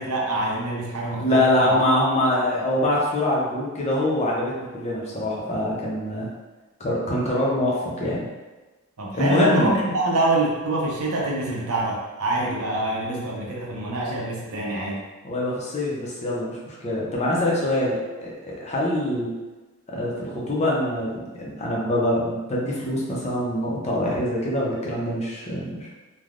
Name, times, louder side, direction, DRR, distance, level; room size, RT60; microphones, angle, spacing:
voice 1, 0.0-1.7 9.0-15.0, right 2 dB, 75° right, -3 dB, 0.7 m, -25 dB
voice 2, 1.2-6.3 6.8-8.2 9.1-9.7 12.4-12.5 13.1-13.2 15.2-19.3 19.9-25.9, left 1 dB, 30° left, -4 dB, 0.6 m, -24 dB
3.3 x 2.2 x 2.4 m, 1.2 s
head